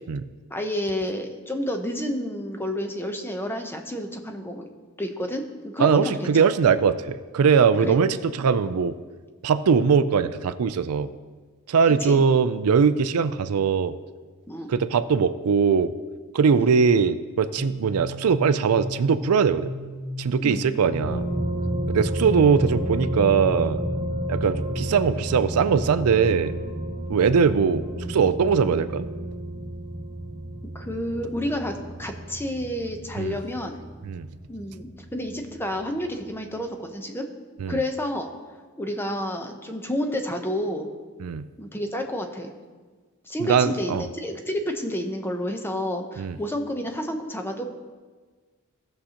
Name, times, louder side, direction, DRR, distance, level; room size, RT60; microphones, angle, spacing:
voice 1, 0.5-4.7 5.0-6.3 7.8-8.0 12.0-12.2 14.5-14.7 16.6-16.7 20.4-20.6 30.7-33.7 34.5-37.3 37.7-38.3 38.8-40.9 41.6-42.5 43.2-47.6, left 1 dB, 10° left, 4 dB, 0.7 m, -30 dB
voice 2, 5.8-8.9 9.4-11.1 11.7-13.9 14.7-15.9 16.3-19.7 20.2-21.2 21.9-23.8 24.3-26.5 27.1-29.1 33.2-33.4 34.0-34.3 37.6-37.8 41.2-41.5 43.4-44.0 46.2-46.4, right 6 dB, 75° right, 13 dB, 0.4 m, -21 dB
sound 1, 17.6-25.1, left 1 dB, 25° left, 1.5 m, -35 dB
sound 2, 21.0-36.1, right 1 dB, 15° right, 1.4 m, -31 dB
16.5 x 6.4 x 2.9 m, 1.4 s
head